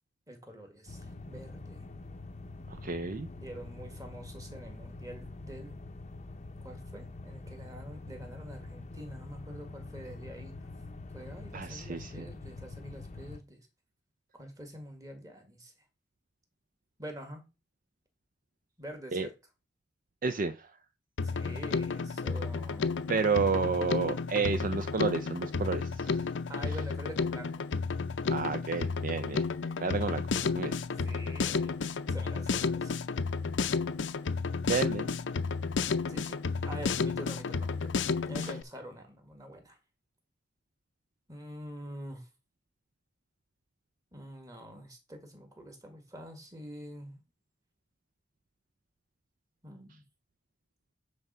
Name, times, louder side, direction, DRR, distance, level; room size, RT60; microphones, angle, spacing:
voice 1, 0.3-1.8 3.4-5.8 6.6-10.5 11.1-13.7 14.3-15.7 17.0-17.4 18.8-19.3 21.2-22.9 26.5-27.6 31.0-31.8 32.1-32.9 36.1-36.4 36.6-39.8 41.3-42.3 44.1-47.2 49.6-50.0, equal, 20° right, 1.8 m, -46 dB
sound 1, 0.9-13.4, left 2 dB, 35° left, 0.7 m, -45 dB
voice 2, 2.7-3.3 11.5-12.2 19.1-19.3 20.2-20.7 23.1-26.3 28.3-29.4 29.8-30.2 30.5-30.7 34.7-35.1 38.4-38.5, right 4 dB, 45° right, 0.5 m, -31 dB
Drum kit, 21.2-38.6, left 4 dB, 75° left, 0.6 m, -32 dB
9.5 x 3.4 x 5.5 m
head